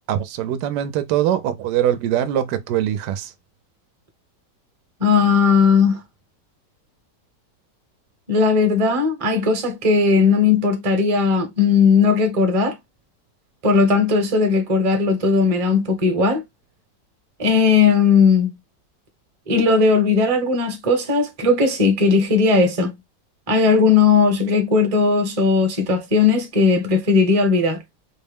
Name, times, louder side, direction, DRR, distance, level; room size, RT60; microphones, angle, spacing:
voice 1, 0.1-3.3, right 11 dB, 75° right, 1.1 m, -22 dB
voice 2, 5.0-6.0 8.3-12.8 13.6-16.4 17.4-18.5 19.5-22.9 23.5-27.8, left 4 dB, 25° right, 0.7 m, -17 dB
4.3 x 2.1 x 3.5 m
omnidirectional pair, 2.0 m